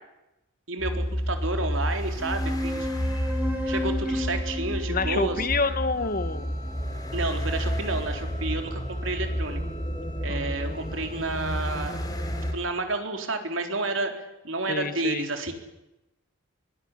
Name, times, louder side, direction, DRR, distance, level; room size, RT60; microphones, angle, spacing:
voice 1, 0.7-2.9 3.6-5.4 7.1-9.6 10.2-12.0 12.5-14.1 14.4-15.5, right 2 dB, 70° right, 5 dB, 4.0 m, -30 dB
sound 1, 0.8-12.5, equal, 20° left, 3.9 m, -30 dB
sound 2, 2.2-7.1, left 1 dB, 10° right, 5.6 m, -33 dB
voice 2, 4.9-6.6 10.3-10.5 14.7-15.3, left 3 dB, 45° left, 11 dB, 1.7 m, -28 dB
Wind instrument woodwind instrument, 6.0-12.9, left 2 dB, 65° left, 5.5 m, -48 dB
23.5 x 20.0 x 9.8 m, 0.95 s
head